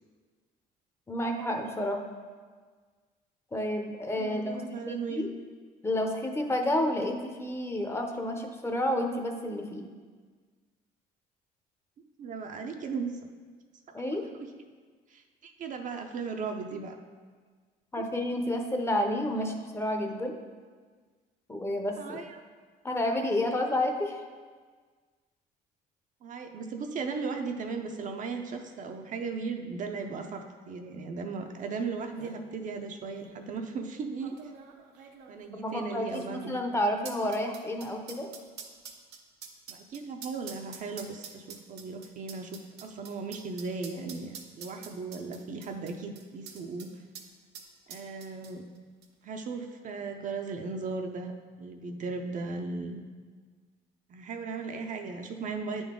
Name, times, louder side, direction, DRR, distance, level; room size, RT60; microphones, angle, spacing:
voice 1, 1.1-2.0 3.5-5.3 5.8-9.9 13.9-14.2 17.9-20.4 21.5-22.2 22.8-24.2 35.6-38.3, left 1 dB, 15° left, 3 dB, 0.7 m, -30 dB
voice 2, 4.2-5.3 12.2-13.1 15.1-17.0 22.0-22.4 26.2-34.4 35.3-36.6 39.7-46.9 47.9-48.6 49.2-51.3 51.6-53.0 54.1-55.8, right 4 dB, 50° right, 4 dB, 0.6 m, -37 dB
sound 1, 31.6-31.7 32.0-32.4 33.2-33.3 34.2-46.9 47.1-47.3 47.5-48.8 49.0-49.1, right 7 dB, 85° right, 0.8 m, -47 dB
9.1 x 3.9 x 3.6 m, 1.5 s
cardioid pair, 110°, 17 cm